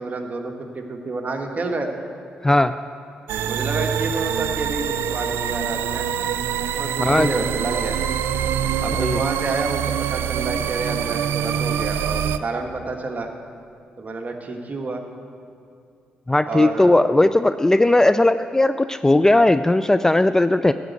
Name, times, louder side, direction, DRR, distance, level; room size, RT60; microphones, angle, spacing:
voice 1, 0.0-1.9 3.5-6.1 6.8-8.0 8.8-9.8 10.1-13.3 14.0-15.0 16.5-17.1, right 3 dB, 40° right, 3 dB, 1.4 m, -29 dB
voice 2, 2.4-2.7 7.0-7.3 9.0-9.2 16.3-20.7, left 2 dB, 15° left, 12 dB, 0.3 m, -17 dB
sound 1, 3.3-12.4, right 9 dB, 75° right, 0.4 m, -25 dB
13.0 x 5.1 x 8.3 m, 2.4 s
supercardioid pair, 50°, 4 cm